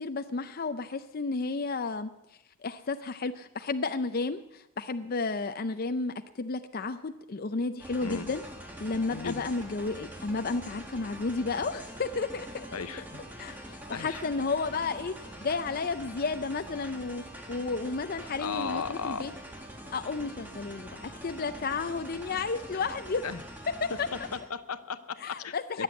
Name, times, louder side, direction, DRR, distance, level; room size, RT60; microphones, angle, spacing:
voice 1, 0.0-2.1 2.6-8.4 8.8-12.7 13.4-17.2 17.5-19.3 19.9-23.2 23.8-24.1 25.2-25.8, left 4 dB, 40° left, 9 dB, 0.5 m, -32 dB
sound 1, 7.8-24.4, equal, 10° right, 1.9 m, -44 dB
voice 2, 9.1-9.4 12.7-13.2 13.9-14.2 18.4-19.2 23.2-23.4 24.3-25.8, left 5 dB, 80° left, 12 dB, 0.8 m, -36 dB
21.0 x 7.7 x 8.2 m, 0.92 s
head